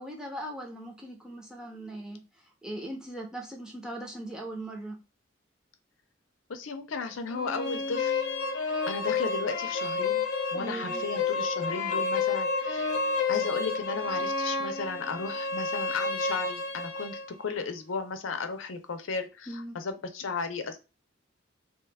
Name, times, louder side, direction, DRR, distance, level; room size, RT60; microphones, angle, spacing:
voice 1, 0.0-2.2 2.6-5.0 10.5-11.0 19.5-19.8, right 1 dB, 5° right, 0.6 m, -39 dB
voice 2, 6.5-8.3 8.9-10.2 10.5-12.9 13.3-20.8, left 4 dB, 85° left, 0.6 m, -35 dB
sound 1, 7.3-17.3, left 4 dB, 55° left, 0.8 m, -30 dB
2.9 x 2.3 x 3.4 m
head